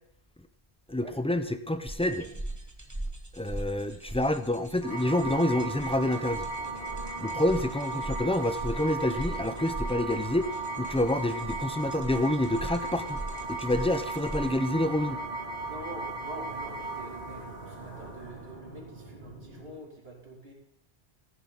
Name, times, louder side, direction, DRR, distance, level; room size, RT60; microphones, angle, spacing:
voice 1, 0.9-2.3 3.3-6.5 7.2-10.5 10.8-13.2 13.5-15.2, left 1 dB, 10° left, 10 dB, 0.4 m, -28 dB
sound 1, 1.9-14.6, right 1 dB, 15° right, 1.2 m, -40 dB
sound 2, 4.8-19.8, right 3 dB, 85° left, 6.9 m, -37 dB
voice 2, 15.6-20.5, right 1 dB, 65° right, -1 dB, 3.0 m, -45 dB
14.0 x 10.5 x 3.9 m, 0.69 s
omnidirectional pair, 1.1 m